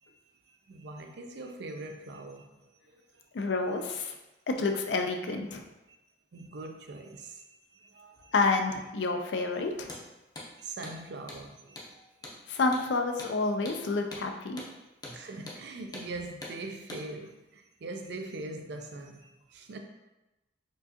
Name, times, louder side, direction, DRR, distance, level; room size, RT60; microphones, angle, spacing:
voice 1, 0.0-3.3 5.9-6.0 6.3-8.3 10.6-12.3 15.0-19.8, right 2 dB, 65° right, 4 dB, 0.4 m, -43 dB
voice 2, 3.3-4.1 4.5-5.6 8.3-9.9 12.5-14.6, left 3 dB, 75° left, 4 dB, 0.4 m, -29 dB
Hammer, 9.9-10.0 10.4-10.5 10.8-11.0 11.3-11.4 11.8-11.9 12.2-12.4 12.7-12.9 13.2-13.3 13.7-13.8 14.1-14.3 14.6-14.7 15.0-15.2 15.5-15.6 15.9-16.1 16.4-16.6 16.9-17.0, left 2 dB, 20° left, 0.6 m, -43 dB
4.5 x 2.5 x 2.7 m, 1.0 s
head